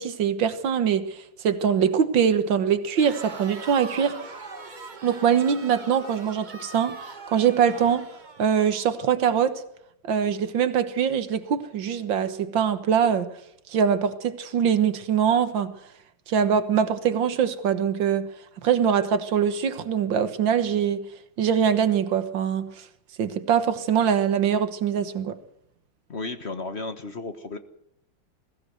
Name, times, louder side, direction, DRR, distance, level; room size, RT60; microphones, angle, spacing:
voice 1, 0.0-4.2 5.0-8.1 8.4-9.6 10.0-13.3 13.7-15.7 16.3-18.3 18.6-21.0 21.4-22.8 23.2-25.4, right 8 dB, 80° right, 2.0 m, -23 dB
Crowd, 2.9-9.1, right 3 dB, 25° right, 1.4 m, -41 dB
voice 2, 26.1-27.6, left 3 dB, 40° left, 1.4 m, -33 dB
21.0 x 16.0 x 7.9 m
omnidirectional pair, 2.0 m